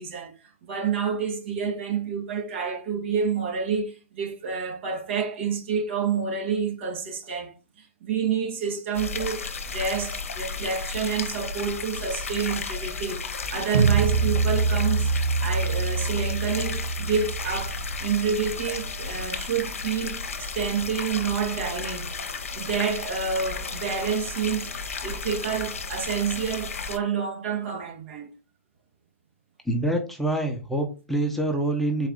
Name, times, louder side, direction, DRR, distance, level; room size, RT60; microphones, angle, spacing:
voice 1, 0.0-15.1 15.4-22.1 22.5-24.7 25.0-28.3, right 6 dB, 60° right, 1.4 m, -29 dB
sound 1, 8.9-27.0, left 4 dB, 85° left, 0.6 m, -34 dB
sound 2, 13.7-18.8, right 4 dB, 75° right, 0.7 m, -25 dB
voice 2, 29.7-32.1, right 1 dB, ahead, 0.8 m, -26 dB
4.1 x 2.6 x 3.8 m
hypercardioid pair, 115°, 7 cm